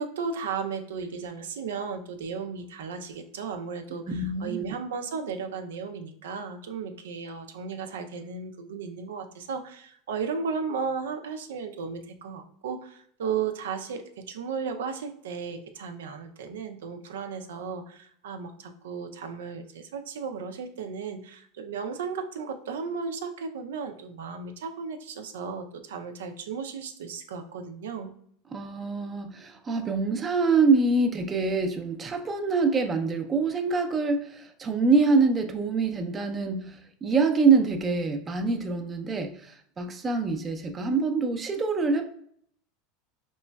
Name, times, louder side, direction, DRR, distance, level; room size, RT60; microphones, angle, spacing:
voice 1, 0.0-28.1, right 5 dB, 85° right, 6 dB, 0.5 m, -35 dB
voice 2, 4.1-4.6 28.5-42.0, right 4 dB, 25° right, 6 dB, 0.5 m, -25 dB
4.2 x 3.0 x 2.2 m, 0.65 s
hypercardioid pair, 105°, 0 cm